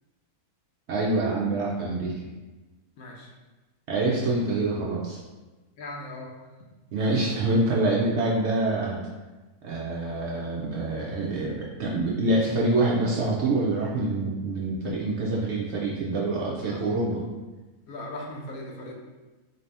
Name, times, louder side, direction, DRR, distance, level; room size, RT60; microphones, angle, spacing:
voice 1, 0.9-2.1 3.9-5.2 6.9-9.0 9.6-17.2, right 2 dB, 65° right, -4 dB, 0.7 m, -26 dB
voice 2, 3.0-3.3 5.8-6.3 16.6-16.9 17.9-18.9, left 1 dB, 75° left, -1 dB, 1.1 m, -38 dB
3.9 x 2.7 x 3.3 m, 1.2 s
omnidirectional pair, 1.6 m